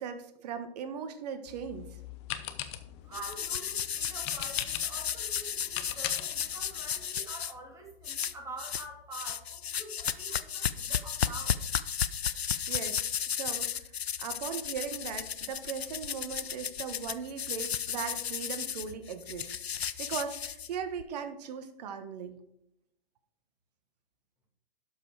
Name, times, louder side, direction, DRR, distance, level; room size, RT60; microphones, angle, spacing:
voice 1, 0.0-1.9 12.7-13.0 13.3-13.8 14.2-22.4, right 7 dB, 40° right, 8 dB, 1.3 m, -38 dB
sound 1, 1.5-7.1, left 13 dB, 30° left, 0.8 m, -41 dB
voice 2, 3.0-11.6, right 2 dB, 10° right, 1 dB, 2.4 m, -46 dB
sound 2, 3.1-7.5 8.0-8.9 9.1-21.0, left 8 dB, 80° left, 0.7 m, -34 dB
12.0 x 5.5 x 4.8 m, 0.77 s
hypercardioid pair, 135°, 31 cm